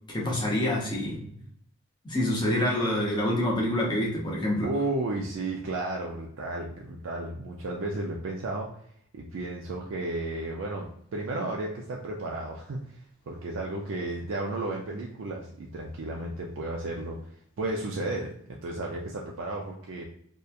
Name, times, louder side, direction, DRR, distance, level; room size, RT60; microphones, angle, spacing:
voice 1, 0.1-1.2 2.0-4.7, left 1 dB, 20° left, -3 dB, 0.6 m, -26 dB
voice 2, 4.6-8.7 9.1-17.2 17.6-18.3 18.6-20.0, right 2 dB, 75° right, -1 dB, 0.4 m, -33 dB
2.8 x 2.2 x 2.3 m, 0.66 s
head